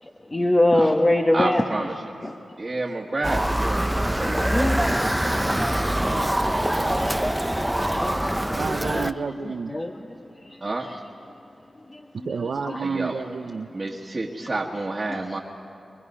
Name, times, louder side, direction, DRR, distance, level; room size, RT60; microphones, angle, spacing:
voice 1, 0.0-1.6 2.2-2.3 4.2-4.8 5.3-5.6 6.2-6.8 7.9-9.1 9.7-9.9 10.4-10.6 11.9-12.1 12.6-12.8, left 1 dB, 30° left, 2 dB, 1.2 m, -24 dB
voice 2, 1.3-1.9 2.6-5.0 6.1-6.4 6.8-7.0 8.0-8.2 8.9-9.0 10.6-10.9 12.8-13.1 13.7-15.4, right 2 dB, 35° right, -3 dB, 1.5 m, -30 dB
Motor vehicle (road) / Siren, 3.2-9.1, right 1 dB, 10° right, 0.6 m, -24 dB
voice 3, 8.5-9.7 12.1-13.7, right 5 dB, 75° right, 9 dB, 0.6 m, -30 dB
24.0 x 21.5 x 5.5 m, 2.9 s
cardioid pair, 65°, 0 cm